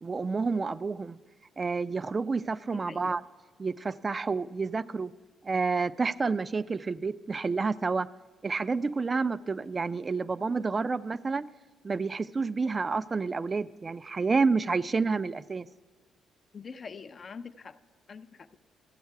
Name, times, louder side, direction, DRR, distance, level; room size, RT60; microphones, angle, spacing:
voice 1, 0.0-1.2 1.6-3.2 3.6-5.1 5.4-8.1 8.4-11.5 11.8-15.7, right 4 dB, 30° right, 17 dB, 0.3 m, -29 dB
voice 2, 2.7-3.2 16.5-17.8 18.1-18.5, left 5 dB, 45° left, 11 dB, 0.4 m, -44 dB
14.5 x 7.3 x 4.7 m, 1.4 s
cardioid pair, 90°, 0 cm